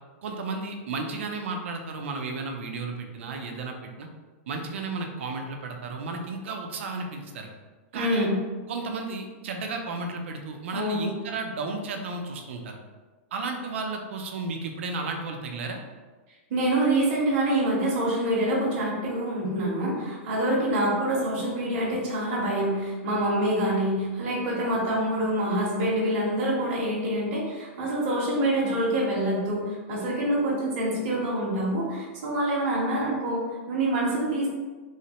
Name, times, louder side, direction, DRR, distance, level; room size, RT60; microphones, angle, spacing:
voice 1, 0.2-4.1 4.5-7.5 7.9-8.3 8.7-12.8 13.3-15.8, right 3 dB, 65° right, 3 dB, 0.4 m, -33 dB
voice 2, 7.9-8.3 10.7-11.1 16.5-34.5, right 1 dB, 35° right, -6 dB, 0.7 m, -26 dB
3.0 x 2.0 x 2.8 m, 1.3 s
supercardioid pair, 175°, 7 cm